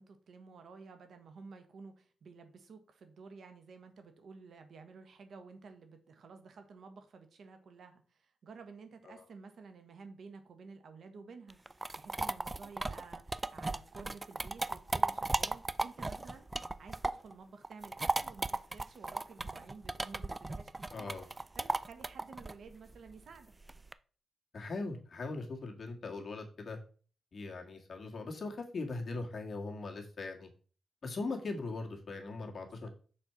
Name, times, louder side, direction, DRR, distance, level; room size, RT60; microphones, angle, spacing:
voice 1, 0.0-16.4 16.8-23.5 32.7-32.9, right 4 dB, 70° right, 7 dB, 1.4 m, -52 dB
sound 1, 11.5-17.3 17.6-23.9, right 2 dB, 20° right, 0.4 m, -36 dB
voice 2, 20.9-21.3 24.5-26.8 27.3-30.5 31.0-32.9, left 3 dB, 50° left, 1 dB, 1.8 m, -40 dB
6.6 x 4.4 x 5.8 m, 0.40 s
cardioid pair, 100°, 0 cm